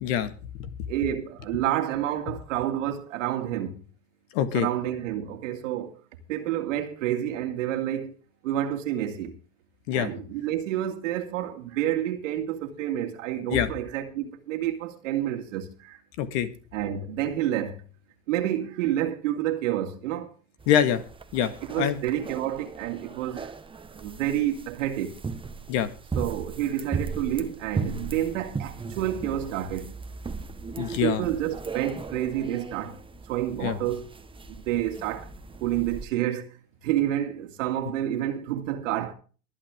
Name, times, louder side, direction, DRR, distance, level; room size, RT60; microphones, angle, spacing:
voice 1, 0.0-0.3 0.6-0.7 4.3-4.7 9.9-10.1 13.5-13.7 16.2-16.5 20.7-21.0 21.3-22.0 25.7-25.9 30.8-31.2 33.6-33.8, left 9 dB, 65° left, 1.9 m, -25 dB
voice 2, 0.9-3.8 4.5-6.0 6.3-8.2 8.4-9.3 9.9-16.0 16.7-17.8 18.3-20.3 21.6-23.5 24.0-25.1 26.2-29.9 31.0-33.0 33.3-34.1 34.5-35.3 35.6-36.5 36.8-39.1, right 12 dB, 75° right, 2.3 m, -29 dB
sound 1, 20.6-36.1, right 4 dB, 15° right, 1.2 m, -37 dB
23.5 x 8.6 x 3.6 m
hypercardioid pair, 90°, 38 cm